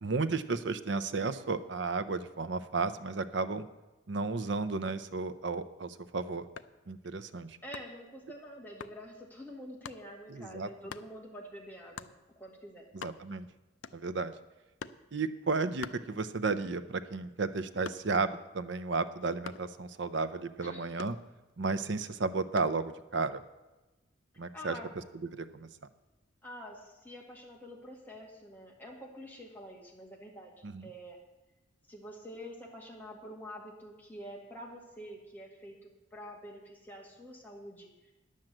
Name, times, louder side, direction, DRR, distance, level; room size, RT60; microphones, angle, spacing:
voice 1, 0.0-3.7 4.1-6.4 6.9-7.6 10.3-10.7 12.9-13.5 13.9-14.3 15.1-21.2 21.6-23.4 24.4-24.8 25.3-25.7 30.6-30.9, right 4 dB, 60° right, 11 dB, 0.6 m, -33 dB
sound 1, 6.5-6.8 7.7-8.1 8.8-9.0 9.8-10.1 10.9-11.1 12.0-12.2 12.6-12.7 12.9-13.4 13.8-14.2 14.8-15.1 15.8-16.6 16.9-18.3 19.4-19.8 21.0-21.7 22.6-22.8, left 6 dB, 70° left, 0.5 m, -45 dB
voice 2, 7.6-12.9 20.6-20.9 24.5-24.9 26.4-30.5 30.8-31.2 31.9-38.1, equal, 10° left, -2 dB, 2.0 m, -47 dB
10.5 x 7.5 x 7.7 m, 1.1 s
head